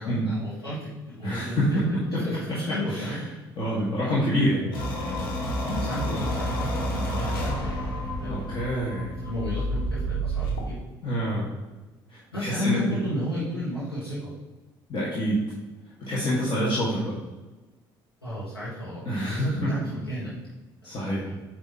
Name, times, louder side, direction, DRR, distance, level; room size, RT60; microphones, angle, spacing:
voice 1, 0.0-1.6 1.9-3.2 5.6-7.6 7.8-8.4 9.2-10.8 12.3-14.3 18.2-20.3, equal, 85° left, -11 dB, 1.6 m, -33 dB
voice 2, 1.2-2.2 2.9-3.2 3.6-4.7 8.2-9.1 11.0-11.5 12.1-13.0 14.9-15.4 16.1-17.1 19.1-19.7 20.8-21.3, equal, 40° left, -7 dB, 1.8 m, -26 dB
sound 1, 4.7-10.6, equal, 70° left, 1.4 m, -29 dB
8.9 x 3.2 x 4.3 m, 1.2 s
figure-of-eight pair, 50°, 12 cm